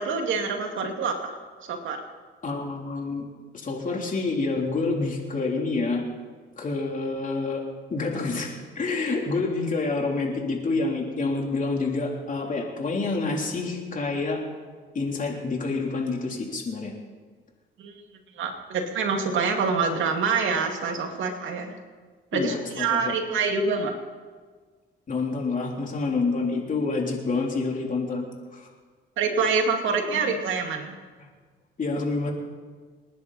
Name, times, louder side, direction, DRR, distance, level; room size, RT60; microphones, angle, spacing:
voice 1, 0.0-1.4 1.7-2.0 17.8-18.0 18.4-21.8 22.3-23.9 29.2-31.0, right 5 dB, 75° right, 3 dB, 2.4 m, -26 dB
voice 2, 2.4-3.3 3.5-6.0 6.6-7.6 7.9-14.4 14.9-16.9 22.3-23.2 25.1-28.3 28.5-28.7 31.2-31.3 31.8-32.3, left 3 dB, 40° left, 0 dB, 3.6 m, -28 dB
28.5 x 10.5 x 4.3 m, 1.5 s
cardioid pair, 90°, 20 cm